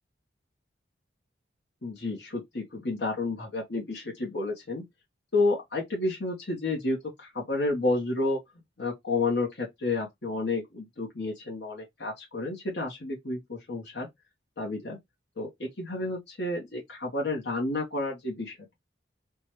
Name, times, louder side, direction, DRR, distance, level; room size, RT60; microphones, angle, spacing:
voice 1, 1.8-4.8 5.3-8.4 8.8-14.1 14.6-15.0 15.4-18.7, left 2 dB, 60° left, 1.0 m, -30 dB
3.6 x 2.2 x 3.0 m
head